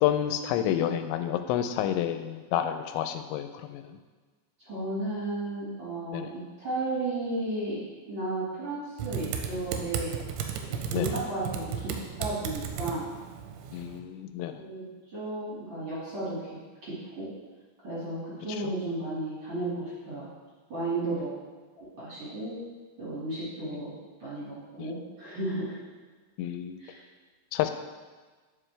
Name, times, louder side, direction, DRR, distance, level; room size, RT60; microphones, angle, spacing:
voice 1, 0.0-4.0 6.1-6.3 10.9-11.2 13.7-14.5 24.8-24.9 26.4-26.8 27.5-27.7, left 11 dB, 90° left, 8 dB, 2.9 m, -29 dB
voice 2, 4.6-7.8 8.1-10.2 10.7-13.1 14.6-17.3 17.8-20.3 20.7-21.3 21.8-22.6 23.0-23.9 24.2-25.8 26.8-27.0, right 2 dB, 45° right, -10 dB, 1.9 m, -34 dB
Typing, 9.0-14.0, right 7 dB, 90° right, 2.9 m, -35 dB
11.0 x 4.9 x 3.3 m, 1.4 s
omnidirectional pair, 5.2 m